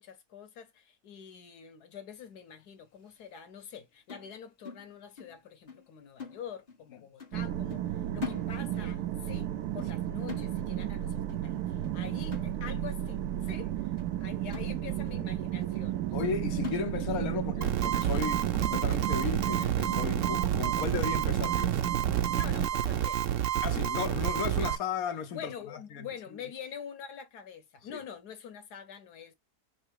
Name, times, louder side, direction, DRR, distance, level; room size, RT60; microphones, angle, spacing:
voice 1, 0.0-7.9 8.1-13.9 14.2-16.1 22.3-23.2 24.6-24.7 25.3-29.3, left 7 dB, 85° left, 1.5 m, -45 dB
sound 1, 4.1-5.4 5.7-5.9 6.2-6.9 7.2-7.4 7.7-9.0 9.3-9.5 9.8-10.0 10.3-11.0 11.3-11.5 11.8-12.0 12.3-13.0 13.4-13.5 14.0-14.1 14.5-15.2 15.6-15.7 16.1-16.3 16.6-17.4 17.7-17.8 18.2-18.3 18.7-19.3 19.8-19.9 20.2-20.4, left 5 dB, 30° left, 1.0 m, -44 dB
sound 2, 7.3-22.7, right 12 dB, 85° right, 1.2 m, -33 dB
voice 2, 16.1-22.0 23.6-26.1 27.9-28.0, left 7 dB, 70° left, 1.2 m, -35 dB
sound 3, 17.6-24.8, right 10 dB, 65° right, 0.9 m, -29 dB
5.7 x 2.0 x 4.6 m
omnidirectional pair, 1.6 m